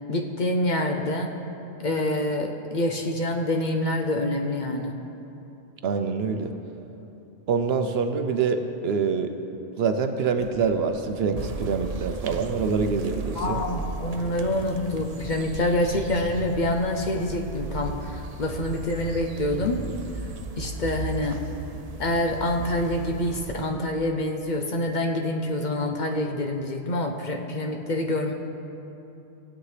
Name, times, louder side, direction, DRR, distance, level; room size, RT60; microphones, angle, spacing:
voice 1, 0.1-1.3 1.8-4.9 13.4-19.8 20.6-21.4 22.0-28.3, left 1 dB, 50° left, 2 dB, 0.7 m, -26 dB
voice 2, 5.8-6.5 7.5-9.3 9.8-13.6, right 5 dB, 70° right, 7 dB, 0.9 m, -25 dB
sound 1, 10.4-15.4, equal, 5° left, 0.7 m, -45 dB
sound 2, 11.4-23.6, right 4 dB, 45° right, 0.5 m, -36 dB
18.0 x 8.2 x 3.3 m, 2.9 s
omnidirectional pair, 1.1 m